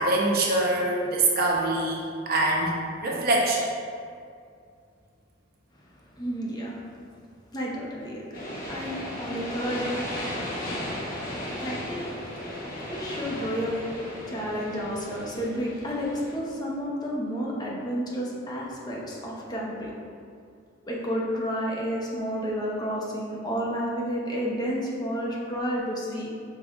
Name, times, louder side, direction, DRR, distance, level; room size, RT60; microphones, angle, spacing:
voice 1, 0.0-2.7 3.0-3.6, right 2 dB, 50° right, -2 dB, 0.7 m, -24 dB
voice 2, 6.2-6.8 7.5-8.4 8.7-10.0 11.6-12.2 12.9-13.9 14.3-19.9 20.8-26.3, equal, 20° left, -4 dB, 0.6 m, -31 dB
sound 1, 8.3-16.3, left 1 dB, 50° left, 0.9 m, -35 dB
5.3 x 4.0 x 2.4 m, 2.3 s
head